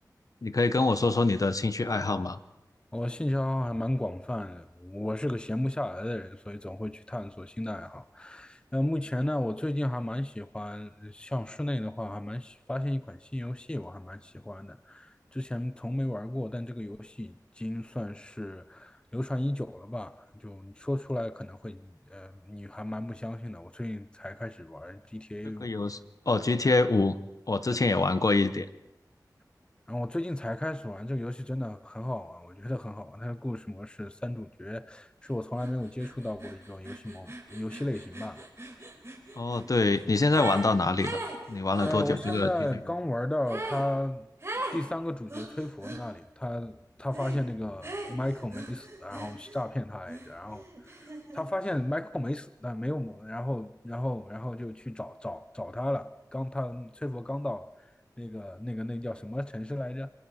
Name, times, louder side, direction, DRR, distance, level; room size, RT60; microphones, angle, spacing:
voice 1, 0.4-2.4 25.6-26.0 26.3-27.1 27.5-28.7 39.4-41.2 41.5-42.5, left 3 dB, 55° left, 1.0 m, -25 dB
voice 2, 2.9-25.7 27.7-27.8 29.9-38.5 41.8-44.3 44.5-57.7 58.2-60.1, left 1 dB, 15° left, 0.6 m, -34 dB
sound 1, 35.6-35.7 36.0-40.7 41.0-42.5 43.5-43.9 44.4-44.8 45.3-46.0 47.1-47.4 47.8-49.7 50.1-51.4, right 1 dB, 40° right, 4.1 m, -40 dB
26.5 x 25.5 x 4.3 m
wide cardioid pair, 60°, 7 cm